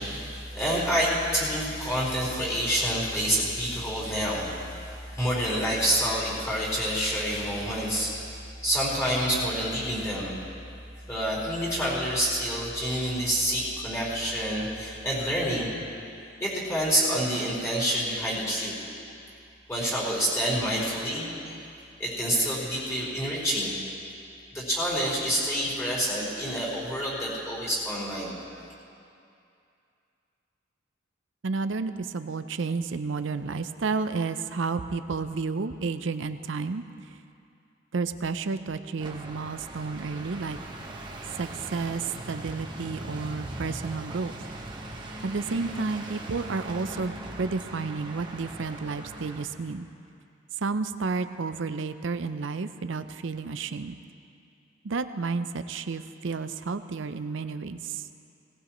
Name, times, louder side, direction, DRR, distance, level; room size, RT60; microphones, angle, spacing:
voice 1, 0.0-8.2 8.6-10.4 11.1-15.7 16.4-18.7 19.7-21.6 22.0-23.7 24.5-28.3, equal, 15° left, -6 dB, 4.3 m, -28 dB
voice 2, 31.4-36.8 37.9-40.6 41.4-44.4 45.2-49.9 50.6-54.0 54.8-58.0, right 4 dB, 65° right, 11 dB, 0.5 m, -31 dB
sound 1, 39.0-49.5, right 1 dB, 25° right, 1.2 m, -40 dB
18.5 x 18.5 x 3.1 m, 2.6 s
head